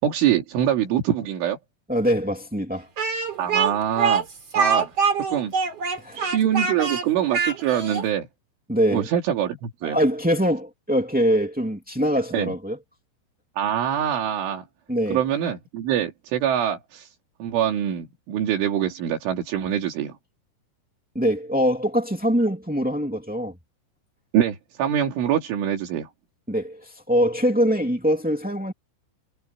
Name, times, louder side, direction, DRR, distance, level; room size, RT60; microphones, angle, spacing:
voice 1, 0.0-1.6 3.4-4.2 4.6-4.9 5.3-5.5 6.2-8.3 8.9-10.0 12.3-12.5 13.6-14.7 15.1-17.1 17.4-20.1 24.3-26.1, right 10 dB, 80° right, 5.2 m, -24 dB
voice 2, 1.9-2.9 6.0-6.2 8.7-9.1 9.8-12.8 14.9-15.2 21.1-23.5 26.5-28.7, equal, 10° right, 0.5 m, -23 dB
Speech, 3.0-8.1, right 5 dB, 35° right, 4.3 m, -24 dB
omnidirectional pair, 5.5 m